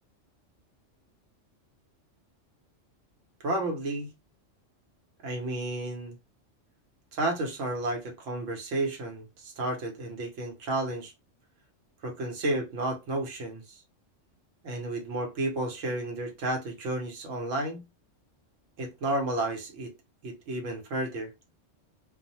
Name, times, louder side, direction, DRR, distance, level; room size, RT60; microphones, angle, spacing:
voice 1, 3.4-4.1 5.2-6.1 7.1-11.1 12.0-13.8 14.6-17.8 18.8-19.9 20.2-21.3, right 2 dB, 80° right, 1.2 m, -32 dB
2.6 x 2.0 x 2.8 m
omnidirectional pair, 1.3 m